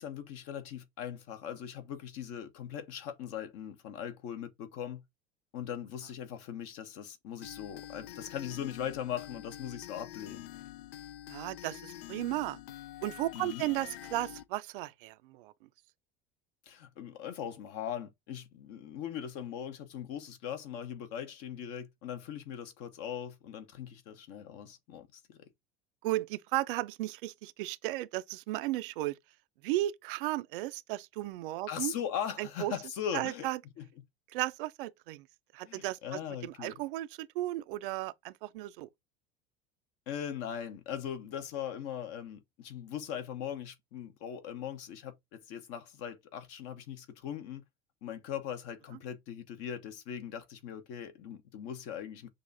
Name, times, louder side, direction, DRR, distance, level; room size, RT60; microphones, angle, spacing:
voice 1, 0.0-5.0 5.5-10.4 13.3-13.6 16.7-25.4 31.7-33.5 35.6-36.7 40.1-47.6 48.0-52.3, left 9 dB, 50° left, 1.0 m, -40 dB
sound 1, 7.4-14.4, left 13 dB, 70° left, 0.5 m, -46 dB
voice 2, 11.3-12.6 13.0-15.5 26.0-29.2 29.6-31.9 32.4-32.7 33.1-33.6 34.3-35.2 35.5-38.9, right 16 dB, 60° right, 0.4 m, -35 dB
6.3 x 2.5 x 2.7 m
figure-of-eight pair, 75°, 30 cm